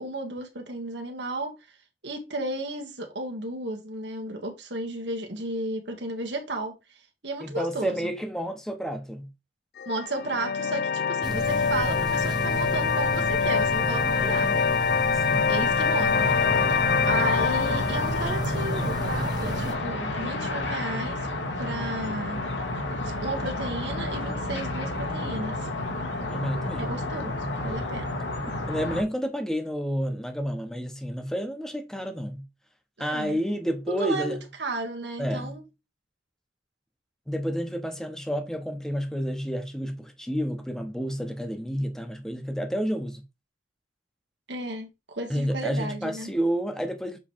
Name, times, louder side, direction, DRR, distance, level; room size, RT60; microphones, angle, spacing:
voice 1, 0.0-1.5 2.0-6.7 7.2-8.1 9.8-14.6 15.5-16.3 16.7-16.8 17.1-21.2 21.6-22.4 23.0-25.7 26.8-27.3 27.6-28.2 33.0-33.4 33.9-35.6 44.5-46.3, right 2 dB, 70° right, 1.7 m, -33 dB
voice 2, 7.4-9.3 15.1-15.5 26.3-27.0 28.7-32.4 33.0-34.4 35.2-35.6 37.3-43.2 45.3-47.2, equal, 5° left, 1.0 m, -30 dB
sound 1, 9.8-20.8, left 6 dB, 55° left, 0.4 m, -26 dB
sound 2, 11.2-19.8, right 2 dB, 20° right, 0.8 m, -32 dB
sound 3, 16.1-29.0, left 2 dB, 80° left, 1.7 m, -31 dB
7.4 x 3.3 x 4.3 m
head